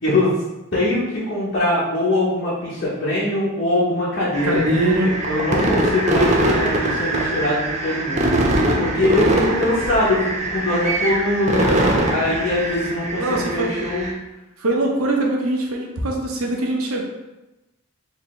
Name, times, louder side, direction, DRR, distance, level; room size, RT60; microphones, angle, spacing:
voice 1, 0.7-4.6 5.0-8.4 8.8-10.2 10.5-11.7 12.1-14.1, left 1 dB, 50° left, -10 dB, 1.0 m, -22 dB
sound 1, 4.3-14.1, right 1 dB, 30° right, 0.4 m, -22 dB
voice 2, 4.4-5.1 13.1-13.7 14.6-17.0, right 1 dB, 80° right, 0 dB, 0.8 m, -22 dB
4.2 x 2.7 x 3.2 m, 1.0 s
head